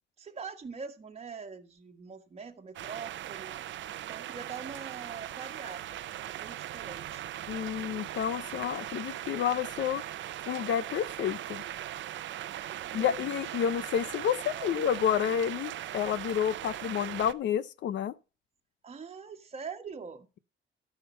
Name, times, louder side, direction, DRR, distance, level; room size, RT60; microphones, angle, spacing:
voice 1, 0.2-3.6 4.0-7.3 12.6-13.1 13.6-13.7 14.5-14.7 18.8-20.3, right 5 dB, 30° right, 1.3 m, -44 dB
sound 1, 2.7-17.3, right 12 dB, 70° right, 0.7 m, -39 dB
voice 2, 7.5-10.0 10.5-11.6 12.9-18.2, left 9 dB, 65° left, 0.6 m, -30 dB
13.0 x 5.8 x 5.5 m
cardioid pair, 90°, 20 cm